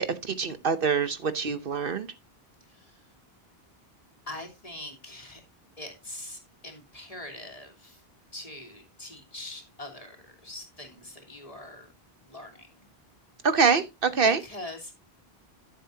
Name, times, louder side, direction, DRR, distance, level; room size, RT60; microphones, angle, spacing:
voice 1, 0.0-2.1 13.4-14.4, right 5 dB, 60° right, 1.0 m, -25 dB
voice 2, 2.7-3.0 4.3-5.4 5.8-8.0 8.3-11.9 12.2-12.7 14.2-14.9, left 1 dB, 35° left, 3.1 m, -43 dB
14.0 x 7.5 x 2.7 m
omnidirectional pair, 1.1 m